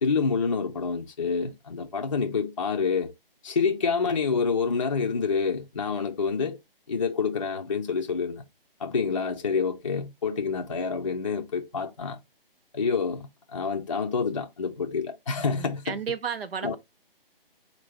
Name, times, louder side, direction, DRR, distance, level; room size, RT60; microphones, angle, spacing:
voice 1, 0.0-3.1 3.4-6.6 6.9-8.4 8.8-12.2 12.7-16.0 16.6-16.8, left 5 dB, 35° left, 0.4 m, -27 dB
voice 2, 15.5-16.8, right 7 dB, 80° right, 0.5 m, -33 dB
4.3 x 2.6 x 4.4 m
figure-of-eight pair, 145°, 29 cm